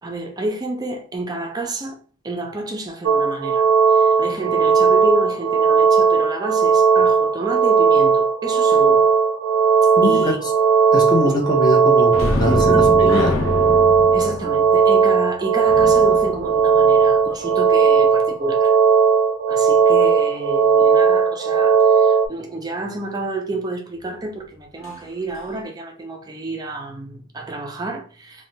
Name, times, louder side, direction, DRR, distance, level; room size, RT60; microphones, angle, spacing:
voice 1, 0.0-9.1 10.0-10.4 11.2-11.3 12.1-12.8 14.1-18.8 19.5-28.5, right 2 dB, 20° right, 0.4 m, -30 dB
sound 1, 3.1-22.3, right 6 dB, 90° right, 0.4 m, -16 dB
voice 2, 10.0-10.5 10.9-13.4, left 1 dB, 20° left, 0.6 m, -22 dB
sound 2, 12.1-17.5 24.8-25.0 25.3-25.5, left 1 dB, 80° left, 0.7 m, -26 dB
3.2 x 2.1 x 2.7 m
head